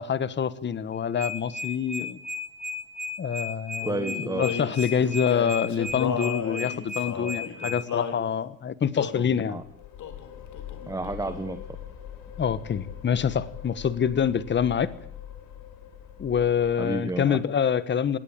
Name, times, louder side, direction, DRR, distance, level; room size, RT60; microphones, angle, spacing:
voice 1, 0.0-2.2 3.2-3.9 4.4-9.6 12.4-14.9 16.2-18.2, left 7 dB, 35° left, 16 dB, 1.3 m, -26 dB
sound 1, 0.9-7.8, left 2 dB, 25° right, 5.8 m, -34 dB
Male singing, 3.8-8.2 8.9-9.4 10.0-10.3 10.5-11.5, left 8 dB, 60° left, 3.7 m, -34 dB
voice 2, 3.8-4.5 9.5-9.6 10.9-11.6 16.8-17.4, right 2 dB, 10° right, 10 dB, 1.2 m, -31 dB
sound 2, 9.6-17.4, left 10 dB, 80° left, 4.6 m, -43 dB
19.5 x 18.0 x 9.0 m, 0.71 s
cardioid pair, 140°, 33 cm